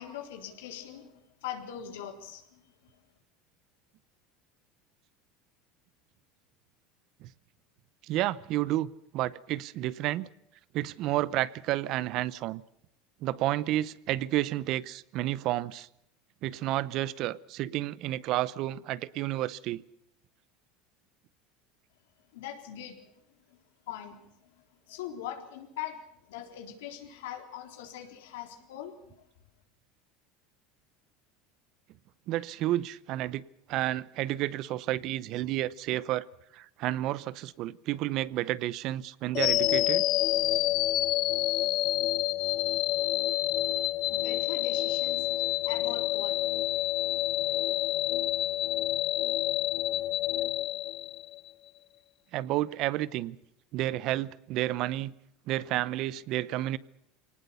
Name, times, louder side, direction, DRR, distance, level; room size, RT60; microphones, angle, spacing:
voice 1, 0.0-2.6 22.3-23.0 23.9-24.2 24.9-26.0 26.3-28.9 44.1-46.5 47.1-47.2, left 10 dB, 90° left, 3.8 m, -41 dB
voice 2, 8.1-10.3 10.7-12.6 13.2-15.9 16.4-19.8 32.3-33.4 33.7-36.2 36.5-40.0 52.3-53.4 53.7-55.1 55.5-56.8, right 15 dB, 55° right, 0.8 m, -31 dB
sound 1, 39.3-51.5, left 15 dB, 55° left, 0.8 m, -28 dB
23.5 x 19.0 x 7.0 m
supercardioid pair, 125°, 0 cm